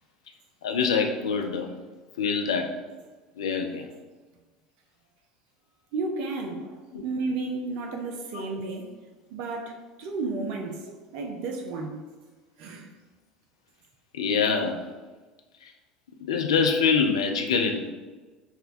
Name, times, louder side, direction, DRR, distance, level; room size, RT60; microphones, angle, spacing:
voice 1, 0.6-1.7 2.2-2.7 3.4-3.9 6.9-7.0 8.3-8.4 14.1-14.8 15.6-15.7 16.2-17.9, left 5 dB, 70° left, 4 dB, 0.4 m, -25 dB
voice 2, 5.9-8.9 9.3-12.0 12.6-12.9, right 3 dB, 55° right, 2 dB, 0.5 m, -33 dB
5.7 x 2.2 x 2.5 m, 1.3 s
figure-of-eight pair, 70°, 3 cm